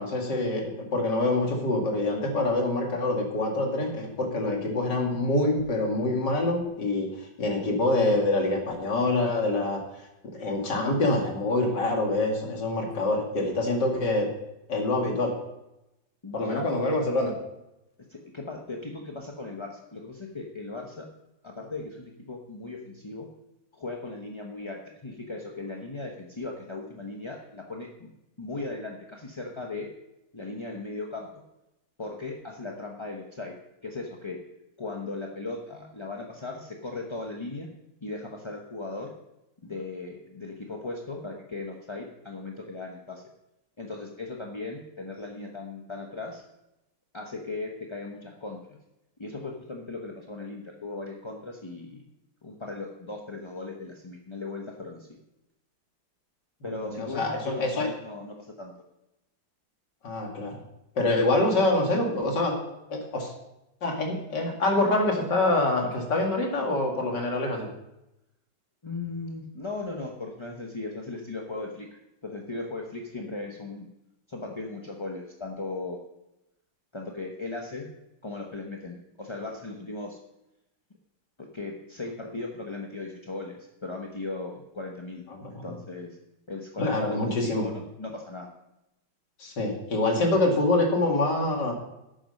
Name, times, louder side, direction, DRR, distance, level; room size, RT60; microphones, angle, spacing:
voice 1, 0.0-9.8 10.3-14.3 14.7-15.3 16.3-17.3 56.6-57.9 60.0-60.6 61.0-62.6 62.9-63.3 63.8-67.7 85.3-85.7 86.8-87.7 89.4-91.7, left 2 dB, 65° left, 1 dB, 2.9 m, -26 dB
voice 2, 16.2-16.7 18.1-21.1 21.4-23.3 23.7-28.1 28.4-29.9 30.3-31.4 32.0-33.5 33.8-34.4 34.8-37.7 38.0-39.1 39.6-43.2 43.8-46.4 47.1-48.8 49.2-52.0 52.4-55.2 56.6-58.7 68.8-73.9 74.3-76.0 76.9-77.9 78.2-80.2 81.4-86.2 86.5-88.5, left 3 dB, 25° left, 0 dB, 0.7 m, -37 dB
11.5 x 8.9 x 5.3 m, 0.90 s
omnidirectional pair, 2.0 m